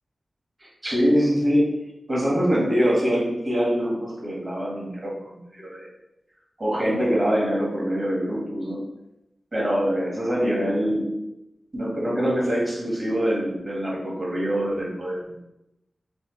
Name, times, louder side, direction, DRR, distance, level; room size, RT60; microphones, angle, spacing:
voice 1, 0.6-1.8 2.1-5.9 6.6-8.8 9.5-11.1 11.7-15.4, equal, 35° right, -5 dB, 1.6 m, -24 dB
4.4 x 3.3 x 3.2 m, 0.90 s
wide cardioid pair, 110°, 0 cm